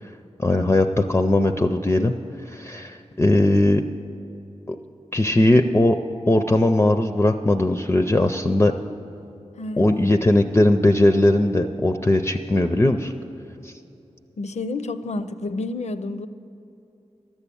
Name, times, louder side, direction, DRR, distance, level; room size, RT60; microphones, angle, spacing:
voice 1, 0.4-2.1 2.5-3.8 4.7-4.8 5.1-6.0 6.3-8.7 9.8-13.1 13.6-13.7, left 1 dB, 20° left, 6 dB, 0.4 m, -19 dB
voice 2, 9.6-10.3 14.4-16.3, left 2 dB, 75° left, 11 dB, 0.5 m, -30 dB
12.5 x 7.0 x 8.4 m, 2.8 s
wide cardioid pair, 95°, 12 cm